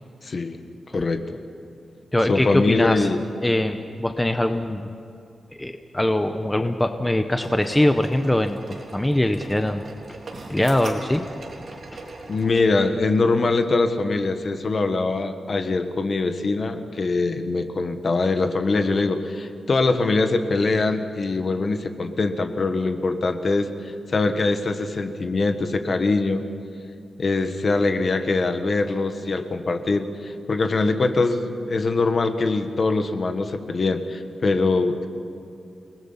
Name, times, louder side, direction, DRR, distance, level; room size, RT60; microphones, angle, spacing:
voice 1, 0.2-0.6 0.9-1.4 2.3-3.2 12.3-26.4 27.2-35.1, left 3 dB, 45° left, 7 dB, 1.5 m, -23 dB
voice 2, 2.1-3.1 3.4-4.9 5.5-9.8 10.5-11.2, left 1 dB, 10° left, 7 dB, 0.8 m, -22 dB
sound 1, 7.3-12.6, right 2 dB, 50° right, 3.5 m, -40 dB
29.5 x 19.5 x 5.8 m, 2.6 s
wide cardioid pair, 145°, 0 cm